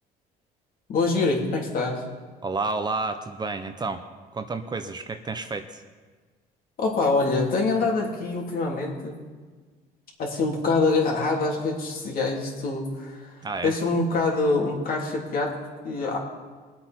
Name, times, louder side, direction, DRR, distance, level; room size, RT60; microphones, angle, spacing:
voice 1, 0.9-2.0 6.8-9.1 10.2-13.3 13.6-15.5 15.8-16.2, left 3 dB, 60° left, -1 dB, 3.0 m, -25 dB
voice 2, 2.4-4.0 4.3-5.8 13.4-13.7, right 3 dB, 25° right, 8 dB, 0.7 m, -30 dB
21.0 x 8.2 x 4.4 m, 1.4 s
cardioid pair, 110°, 17 cm